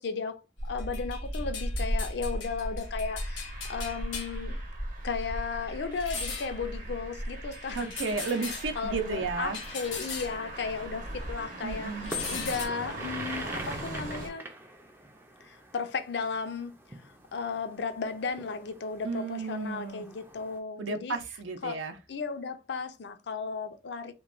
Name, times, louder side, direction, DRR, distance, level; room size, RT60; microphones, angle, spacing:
voice 1, 0.0-4.6 5.0-7.9 8.5-11.9 12.3-14.4 15.4-21.1 21.6-21.8 22.1-24.1, left 5 dB, 60° left, 0.4 m, -35 dB
sound 1, 0.6-11.4 11.7-12.7, left 1 dB, 85° left, 1.0 m, -36 dB
sound 2, 2.6-14.3, right 2 dB, 45° right, 0.8 m, -43 dB
voice 2, 7.7-9.6 11.6-12.5 19.0-20.1 20.8-22.0, right 4 dB, 80° right, 0.5 m, -33 dB
sound 3, 8.4-20.6, right 2 dB, 10° right, 0.4 m, -46 dB
2.9 x 2.2 x 2.4 m
head